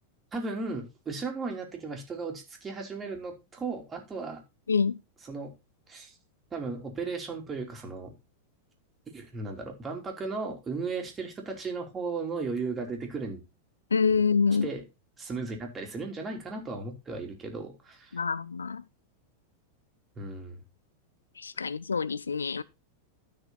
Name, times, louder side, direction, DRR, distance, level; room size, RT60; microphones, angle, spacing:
voice 1, 0.3-4.4 5.2-5.5 5.9-6.2 6.5-8.1 9.1-13.4 14.1-14.2 14.6-14.8 15.2-18.2 20.2-20.6, right 4 dB, 20° right, 3.4 m, -36 dB
voice 2, 13.9-14.7 18.1-18.8 21.4-22.6, left 5 dB, 75° left, 0.4 m, -26 dB
12.5 x 6.3 x 4.1 m
figure-of-eight pair, 90°, 0 cm